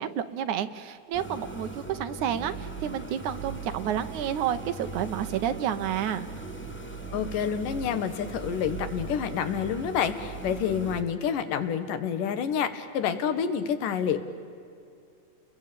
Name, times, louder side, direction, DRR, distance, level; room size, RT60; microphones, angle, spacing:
voice 1, 0.0-6.3, right 9 dB, 75° right, 10 dB, 2.4 m, -30 dB
sound 1, 1.1-11.0, right 3 dB, 5° left, 1.2 m, -39 dB
voice 2, 7.1-14.2, left 8 dB, 90° left, 10 dB, 3.0 m, -28 dB
30.0 x 21.5 x 8.6 m, 2.4 s
omnidirectional pair, 3.7 m